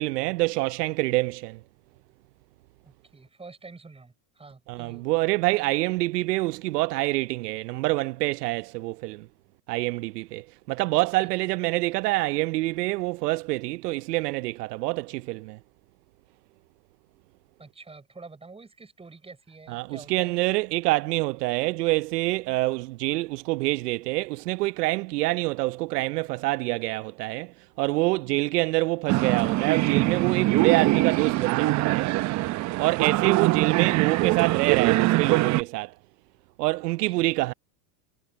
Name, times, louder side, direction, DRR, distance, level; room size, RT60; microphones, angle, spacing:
voice 1, 0.0-1.6 4.7-9.3 9.7-15.6 19.7-32.1 32.8-35.9 36.6-37.5, right 21 dB, 75° right, 0.7 m, -26 dB
voice 2, 2.8-5.0 11.2-11.3 17.6-20.4 37.1-37.3, right 3 dB, 10° right, 5.6 m, -47 dB
sound 1, 29.1-35.6, right 18 dB, 35° right, 0.8 m, -23 dB
supercardioid pair, 120°, 48 cm